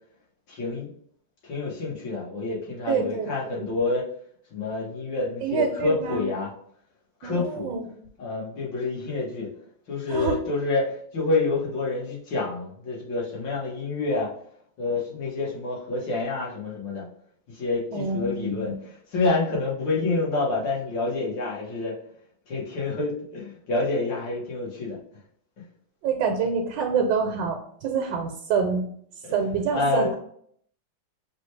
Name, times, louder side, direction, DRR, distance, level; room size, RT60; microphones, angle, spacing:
voice 1, 0.5-0.9 1.4-4.1 4.5-6.5 7.2-7.7 8.2-9.5 9.9-14.3 14.8-17.1 17.5-18.7 19.1-22.0 22.5-25.0 29.3-29.4 29.7-30.1, left 3 dB, 85° left, -4 dB, 2.0 m, -28 dB
voice 2, 2.9-3.3 3.6-3.7 5.4-6.2 7.2-7.9 10.1-10.4 17.9-18.7 26.0-28.9 29.3-30.2, right 5 dB, 80° right, 3 dB, 1.2 m, -26 dB
6.0 x 2.3 x 3.2 m, 0.64 s
omnidirectional pair, 1.9 m